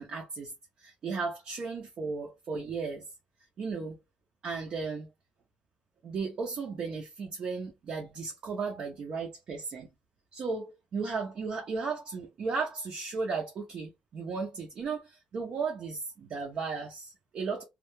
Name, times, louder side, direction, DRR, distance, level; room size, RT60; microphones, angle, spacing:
voice 1, 0.0-3.0 3.6-4.0 4.4-5.1 6.0-9.9 10.3-17.6, right 4 dB, 45° right, 0.6 m, -35 dB
2.3 x 2.2 x 2.9 m
cardioid pair, 175°, 3 cm